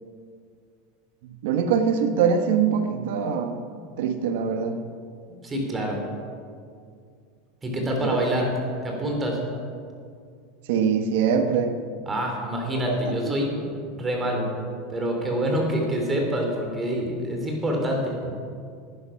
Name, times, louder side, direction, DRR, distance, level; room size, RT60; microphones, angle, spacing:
voice 1, 1.4-3.6 4.0-4.8 8.2-8.3 10.7-11.8 12.9-13.4, right 6 dB, 70° right, 8 dB, 1.1 m, -23 dB
voice 2, 5.4-6.0 7.6-8.5 8.8-9.4 12.1-14.5 14.9-18.3, equal, 20° right, 1 dB, 3.2 m, -26 dB
11.0 x 10.0 x 5.8 m, 2.3 s
hypercardioid pair, 105°, 0 cm